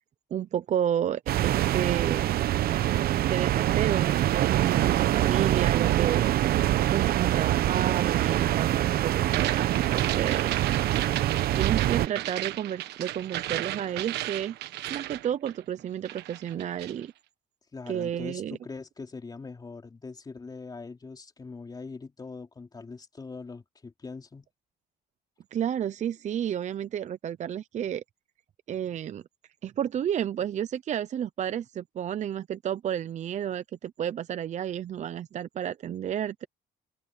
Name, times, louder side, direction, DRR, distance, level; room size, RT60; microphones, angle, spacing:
voice 1, 0.3-2.4 3.1-6.2 6.9-10.7 11.5-14.6 14.9-17.1 17.9-18.6 25.5-28.0 28.7-29.2 29.6-36.5, right 10 dB, 45° right, 0.6 m, -31 dB
sound 1, 1.3-12.1, right 13 dB, 65° right, 0.9 m, -25 dB
sound 2, 9.2-17.0, right 15 dB, 80° right, 1.3 m, -34 dB
voice 2, 17.7-24.5, left 4 dB, 25° left, 3.4 m, -42 dB
cardioid pair, 110°, 17 cm